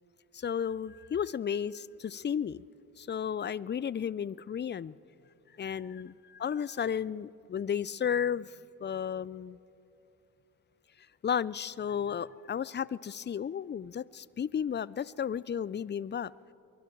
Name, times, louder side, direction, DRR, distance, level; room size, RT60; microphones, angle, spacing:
voice 1, 0.3-2.6 3.0-5.0 5.6-8.6 8.8-9.6 11.2-16.3, left 8 dB, 25° left, 0.4 m, -33 dB
25.0 x 22.5 x 4.6 m
hypercardioid pair, 40°, 47 cm